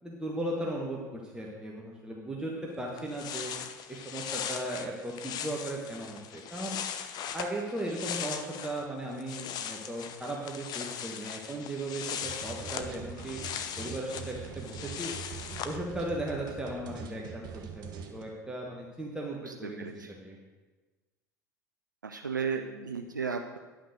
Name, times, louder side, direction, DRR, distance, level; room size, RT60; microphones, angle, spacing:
voice 1, 0.0-3.5 3.9-6.8 7.3-13.4 13.8-15.1 15.6-17.4 17.7-17.8 18.1-20.4, right 1 dB, 10° right, -3 dB, 1.4 m, -37 dB
sound 1, 2.7-2.8 3.0-8.8 9.1-15.8, left 8 dB, 40° left, 0.8 m, -39 dB
sound 2, 12.2-18.2, right 6 dB, 45° right, 1.3 m, -43 dB
voice 2, 19.4-20.1 22.0-23.6, right 5 dB, 85° right, 5 dB, 0.4 m, -35 dB
10.5 x 5.9 x 6.5 m, 1.3 s
figure-of-eight pair, 70°, 10 cm